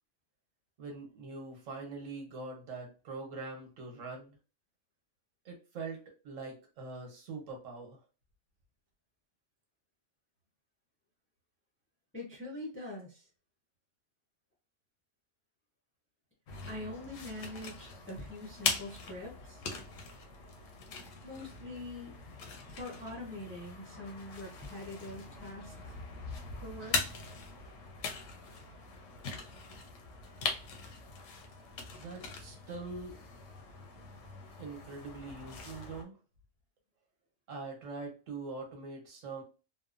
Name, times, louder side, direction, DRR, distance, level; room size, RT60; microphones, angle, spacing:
voice 1, 0.8-4.4 5.4-8.0 31.9-33.2 34.6-36.2 37.5-39.4, right 3 dB, 85° right, 1 dB, 1.3 m, -43 dB
voice 2, 12.1-13.3 16.7-19.6 21.2-22.2 22.6-25.9 26.6-27.0, left 1 dB, 15° left, -2 dB, 0.5 m, -44 dB
sound 1, 16.5-36.0, left 4 dB, 85° left, 1.0 m, -41 dB
3.0 x 2.0 x 2.4 m, 0.33 s
omnidirectional pair, 1.3 m